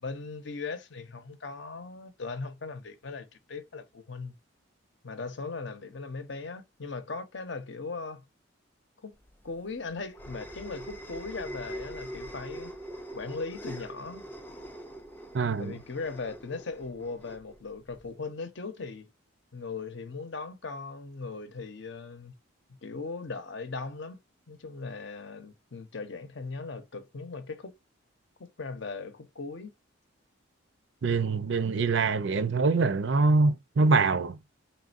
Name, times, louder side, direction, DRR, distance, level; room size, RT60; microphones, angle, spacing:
voice 1, 0.0-4.3 5.0-8.3 9.0-9.2 9.4-12.7 13.1-14.3 15.6-19.1 19.5-22.3 22.7-24.2 24.5-27.7 28.4-29.7, left 4 dB, 55° left, 0.8 m, -38 dB
sound 1, 9.3-18.1, right 1 dB, 10° left, 0.4 m, -43 dB
voice 2, 15.3-15.8 31.0-34.4, right 3 dB, 55° right, 0.5 m, -24 dB
4.2 x 3.7 x 2.5 m
head